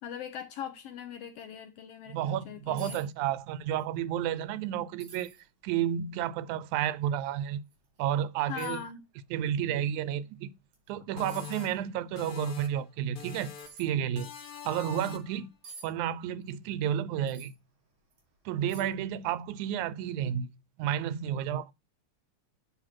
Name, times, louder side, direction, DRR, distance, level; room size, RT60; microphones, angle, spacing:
voice 1, 0.0-3.0 8.5-9.0, left 9 dB, 75° left, 1.5 m, -40 dB
voice 2, 2.1-5.4 5.6-7.6 8.0-8.8 9.3-10.5 10.9-13.5 13.8-14.3 14.7-15.5 15.8-17.5 18.5-20.5 20.8-21.7, right 10 dB, 90° right, 2.0 m, -31 dB
sound 1, 2.8-3.1 3.3-3.9 4.3-4.4 5.0-5.4 6.1-6.2 7.7-7.8 8.6-8.9 10.7-10.9 11.3-11.8 13.6-13.9 15.6-15.9 17.3-17.5 18.1-18.2 18.7-19.1 19.4-19.5, right 4 dB, 55° right, 4.0 m, -49 dB
sound 2, 11.2-12.9 13.2-13.8 14.2-15.4, left 9 dB, 90° left, 0.8 m, -44 dB
8.9 x 3.2 x 5.8 m
omnidirectional pair, 3.3 m